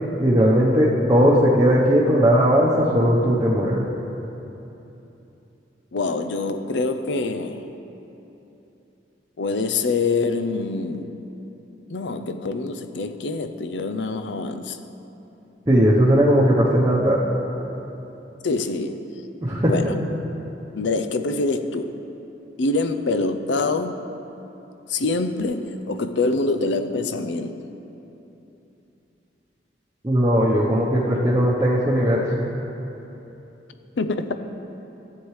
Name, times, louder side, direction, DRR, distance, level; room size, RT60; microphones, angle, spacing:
voice 1, 0.2-3.8 15.7-17.2 19.4-19.9 30.0-32.2, equal, 20° right, -7 dB, 0.9 m, -18 dB
voice 2, 5.9-7.7 9.4-11.2 11.9-14.8 18.4-19.0 19.7-19.9 20.7-21.9 22.6-24.0 24.9-27.5 34.0-34.4, left 3 dB, 80° left, 9 dB, 0.5 m, -25 dB
15.0 x 7.9 x 3.2 m, 3.0 s
head